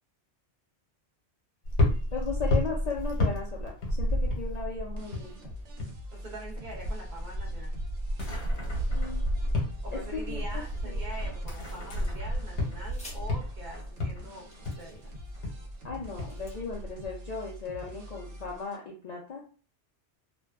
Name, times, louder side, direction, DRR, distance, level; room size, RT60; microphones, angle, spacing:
sound 1, 1.6-6.0 6.3-17.1, left 1 dB, 75° left, 1.1 m, -31 dB
voice 1, 2.1-5.4 8.9-9.3 9.9-10.4 10.8-11.0 15.8-19.4, left 5 dB, 55° left, -2 dB, 0.4 m, -36 dB
sound 2, 5.0-18.8, equal, 90° right, 1.0 m, -45 dB
voice 2, 6.1-7.7 9.8-14.5 14.8-15.2, right 1 dB, 50° right, -2 dB, 0.7 m, -44 dB
sound 3, 11.8-12.3 12.8-13.2 14.0-14.1 14.5-15.3 15.9-16.6, left 1 dB, 5° left, 0.7 m, -51 dB
2.5 x 2.2 x 2.3 m, 0.40 s
omnidirectional pair, 1.2 m